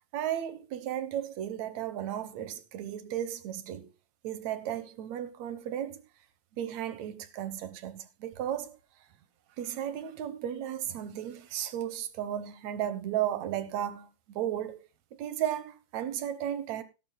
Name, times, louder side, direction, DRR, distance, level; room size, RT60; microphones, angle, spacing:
voice 1, 0.1-3.9 4.2-6.0 6.6-8.8 9.6-14.8 15.2-16.8, right 11 dB, 70° right, 2.2 m, -34 dB
17.0 x 11.0 x 2.2 m
omnidirectional pair, 3.5 m